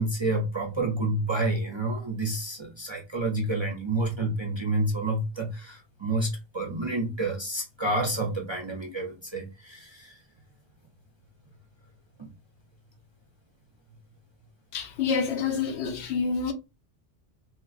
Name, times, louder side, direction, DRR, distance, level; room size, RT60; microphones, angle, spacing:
voice 1, 0.0-10.2 12.2-12.3, right 2 dB, 35° right, 0.4 m, -29 dB
voice 2, 14.7-16.5, left 5 dB, 80° left, 1.0 m, -27 dB
3.1 x 2.8 x 2.4 m
omnidirectional pair, 1.1 m